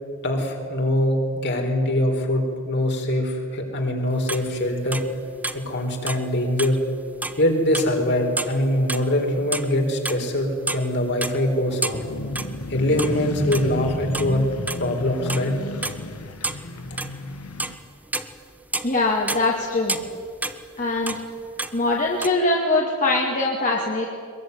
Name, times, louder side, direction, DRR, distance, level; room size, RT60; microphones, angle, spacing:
voice 1, 0.2-5.0 5.5-6.8 7.4-12.0 12.7-14.4 14.8-15.5, left 1 dB, 55° left, 2 dB, 4.3 m, -23 dB
sound 1, 4.3-5.7 6.0-6.3 6.6-7.5 7.7-8.1 8.4-9.7 10.0-12.7 13.0-13.2 13.4-14.9 15.3-15.6 15.8-17.3 17.6-17.8 18.1-19.0 19.3-21.3 21.5-22.3, right 2 dB, 5° right, 1.1 m, -30 dB
sound 2, 11.9-17.8, left 1 dB, 75° left, 1.6 m, -31 dB
voice 2, 18.8-20.0 20.8-21.2 21.7-24.1, left 2 dB, 35° left, -2 dB, 2.5 m, -22 dB
22.5 x 22.0 x 9.6 m, 2.2 s
head